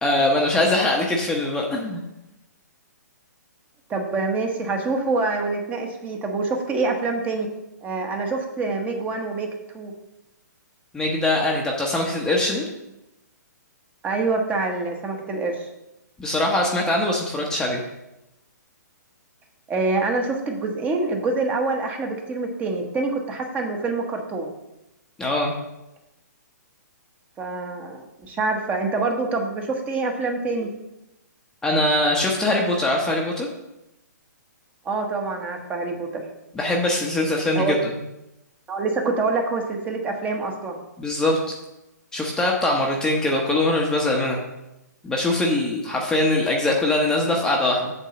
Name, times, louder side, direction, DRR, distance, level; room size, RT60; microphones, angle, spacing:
voice 1, 0.0-2.0 10.9-12.7 16.2-17.8 25.2-25.5 31.6-33.5 36.6-37.7 41.0-41.4 42.1-44.4 45.0-47.9, left 1 dB, 5° left, -1 dB, 0.9 m, -22 dB
voice 2, 3.9-7.5 7.8-9.5 9.7-9.9 14.0-15.7 19.7-24.5 27.4-30.7 34.8-36.2 37.5-37.7 38.7-40.8, right 3 dB, 15° right, 3 dB, 1.1 m, -26 dB
8.1 x 3.8 x 6.8 m, 0.93 s
hypercardioid pair, 140°, 10 cm